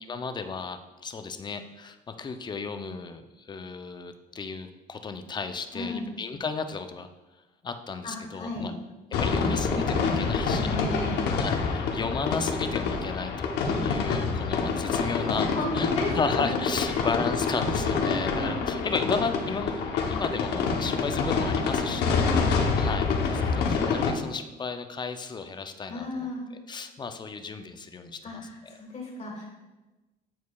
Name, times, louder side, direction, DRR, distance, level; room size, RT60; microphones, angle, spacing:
voice 1, 0.0-7.1 7.6-8.7 9.2-10.8 11.3-13.5 13.8-15.5 15.7-19.8 20.1-22.2 22.8-26.3 26.7-28.7, left 4 dB, 25° left, 8 dB, 0.5 m, -34 dB
voice 2, 5.7-6.1 8.0-8.7 10.6-11.4 13.6-14.0 15.4-16.6 16.9-17.0 18.0-19.1 22.1-22.5 25.9-26.4 28.2-29.5, left 2 dB, 40° left, -2 dB, 2.0 m, -34 dB
sound 1, 9.1-24.1, left 5 dB, 80° left, 0.9 m, -27 dB
9.3 x 4.5 x 2.3 m, 1.1 s
cardioid pair, 110°, 17 cm